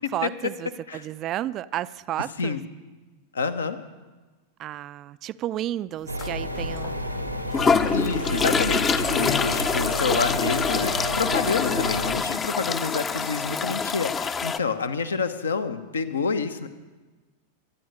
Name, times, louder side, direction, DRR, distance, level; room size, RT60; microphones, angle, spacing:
voice 1, 0.1-2.6 4.6-7.0, right 13 dB, 35° right, 17 dB, 0.4 m, -32 dB
voice 2, 3.3-3.8 7.9-16.7, left 5 dB, 70° left, 10 dB, 1.0 m, -28 dB
sound 1, 6.1-12.1, equal, 90° right, 1.2 m, -31 dB
sound 2, 6.2-6.3 6.8-6.9 7.5-14.6, left 5 dB, 20° left, 0.6 m, -25 dB
23.0 x 9.3 x 5.4 m, 1.3 s
figure-of-eight pair, 90°, 0 cm